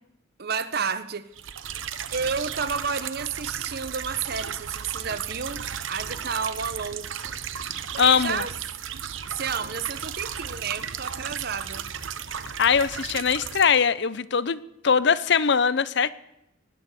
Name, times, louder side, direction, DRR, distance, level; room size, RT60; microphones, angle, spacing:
voice 1, 0.4-1.3 2.1-7.1 8.0-8.5 9.3-11.9, right 6 dB, 55° right, 1.0 m, -31 dB
sound 1, 1.4-13.8, right 8 dB, 85° right, 1.0 m, -35 dB
voice 2, 8.0-8.4 12.6-16.1, left 6 dB, 60° left, 0.7 m, -21 dB
19.0 x 9.2 x 8.3 m
head